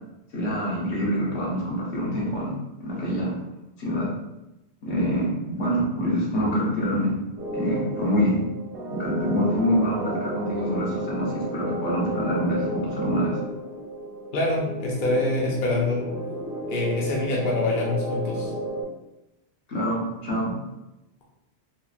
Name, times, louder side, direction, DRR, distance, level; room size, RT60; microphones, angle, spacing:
voice 1, 0.3-3.3 3.8-4.1 4.8-7.1 7.5-8.4 8.9-13.4 19.7-20.5, equal, 75° left, -5 dB, 1.2 m, -25 dB
sound 1, 7.4-18.8, right 1 dB, 60° right, 0.9 m, -33 dB
voice 2, 14.3-16.0 16.7-18.5, left 2 dB, 55° left, -3 dB, 0.7 m, -25 dB
3.1 x 2.4 x 2.4 m, 0.94 s
omnidirectional pair, 1.1 m